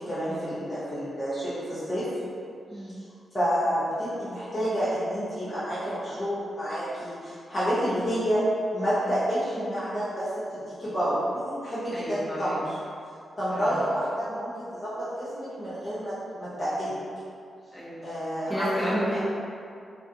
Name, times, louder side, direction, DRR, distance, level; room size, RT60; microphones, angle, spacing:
voice 1, 0.0-2.1 2.7-2.9 3.3-8.4 8.7-12.7 13.4-16.9 18.0-19.2, equal, 45° left, -12 dB, 0.8 m, -29 dB
voice 2, 11.9-12.6 13.5-13.7 17.7-18.1 18.5-19.2, equal, 5° right, -8 dB, 1.0 m, -31 dB
2.5 x 2.5 x 2.6 m, 2.4 s
supercardioid pair, 50°, 0 cm